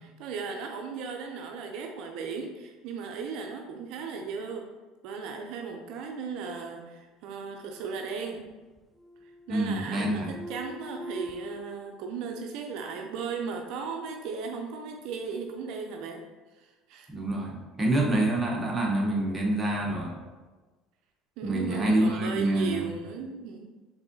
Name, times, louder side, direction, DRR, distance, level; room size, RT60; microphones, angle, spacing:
voice 1, 0.0-4.7 5.0-8.4 9.5-16.2 16.6-17.1 21.4-23.6, right 5 dB, 70° right, 2 dB, 0.5 m, -36 dB
sound 1, 7.5-8.5 8.8-9.7 10.0-11.6, left 1 dB, 10° left, 0.4 m, -43 dB
voice 2, 9.5-10.4 17.1-20.2 21.4-22.9, right 1 dB, 15° right, -2 dB, 0.9 m, -27 dB
4.7 x 3.6 x 2.7 m, 1.3 s
supercardioid pair, 120°, 0 cm